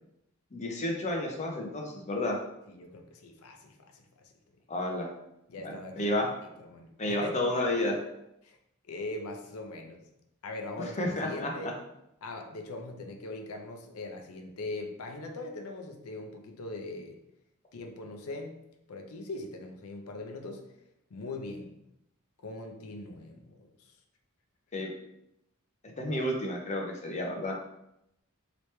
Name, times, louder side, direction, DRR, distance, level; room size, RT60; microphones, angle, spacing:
voice 1, 0.5-2.4 4.7-5.1 5.6-6.3 7.0-8.0 10.8-11.7 24.7-24.9 26.0-27.5, left 1 dB, 30° left, 1 dB, 0.6 m, -31 dB
voice 2, 2.7-4.0 5.5-6.2 6.6-7.4 8.4-8.6 8.9-10.0 10.4-11.7 12.2-17.2 17.7-18.6 18.9-20.7 21.1-21.7 22.4-23.7, left 2 dB, 85° left, 3 dB, 0.6 m, -41 dB
3.1 x 2.9 x 3.2 m, 0.84 s
head